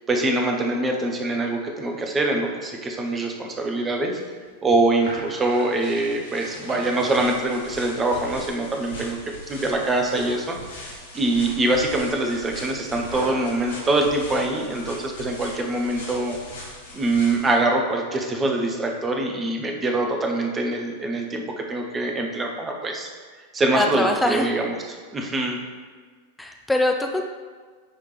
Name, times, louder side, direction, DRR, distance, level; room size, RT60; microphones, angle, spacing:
voice 1, 0.1-4.2 4.6-9.2 9.5-10.6 11.1-16.4 16.9-23.1 23.5-25.6, right 2 dB, 20° right, 2 dB, 0.9 m, -24 dB
sound 1, 3.9-8.8 9.2-9.7 10.0-10.5 11.0-14.9, right 1 dB, 60° right, 1.5 m, -41 dB
sound 2, 6.9-17.5, left 1 dB, 70° left, 1.5 m, -40 dB
voice 2, 23.7-24.5 26.4-27.2, left 1 dB, 5° left, 3 dB, 0.4 m, -22 dB
9.8 x 3.5 x 3.3 m, 1.5 s
figure-of-eight pair, 90°, 0 cm